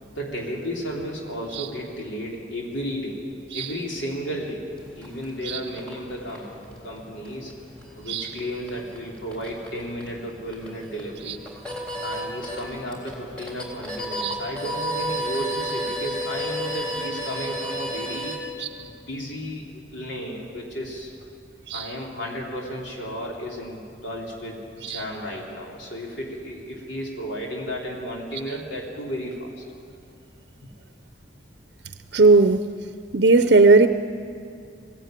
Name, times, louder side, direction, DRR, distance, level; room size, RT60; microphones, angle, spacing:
voice 1, 0.2-3.2 3.5-7.5 7.9-11.4 12.0-18.4 18.8-21.1 21.7-29.5, equal, 85° left, 3.5 m, -33 dB
sound 1, 4.8-18.4, equal, 5° left, 3.6 m, -34 dB
voice 2, 32.1-32.7 33.1-33.9, right 3 dB, 60° right, 0.6 m, -16 dB
21.0 x 16.5 x 9.1 m
head